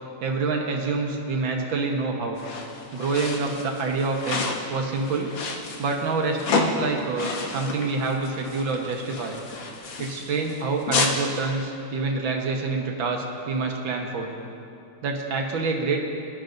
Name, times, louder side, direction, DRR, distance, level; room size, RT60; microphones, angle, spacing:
voice 1, 0.2-2.4 2.9-5.3 5.8-9.4 10.0-14.3 15.0-16.0, right 3 dB, 70° right, 1 dB, 1.9 m, -27 dB
sound 1, 2.4-11.2, left 3 dB, 65° left, 1.8 m, -30 dB
22.5 x 11.5 x 2.6 m, 2.6 s
omnidirectional pair, 2.3 m